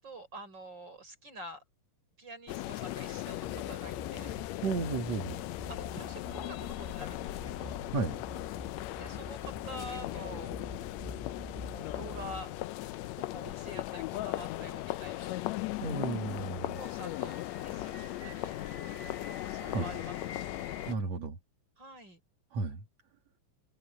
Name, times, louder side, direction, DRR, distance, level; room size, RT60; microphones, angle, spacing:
voice 1, 0.0-1.6 2.2-4.6 5.7-7.7 8.9-10.5 11.7-12.5 13.2-15.4 16.7-18.5 19.5-20.5 21.8-22.2, right 1 dB, 35° right, 6.9 m, -47 dB
sound 1, 2.5-21.0, left 17 dB, 80° left, 1.8 m, -38 dB
sound 2, 3.4-12.5, equal, 5° right, 2.1 m, -47 dB
voice 2, 4.6-5.4 7.9-8.2 15.8-16.8 19.7-19.9 20.9-21.4 22.5-22.8, right 4 dB, 65° right, 3.5 m, -33 dB
sound 3, 15.4-20.9, left 3 dB, 30° left, 3.7 m, -49 dB
omnidirectional pair, 3.3 m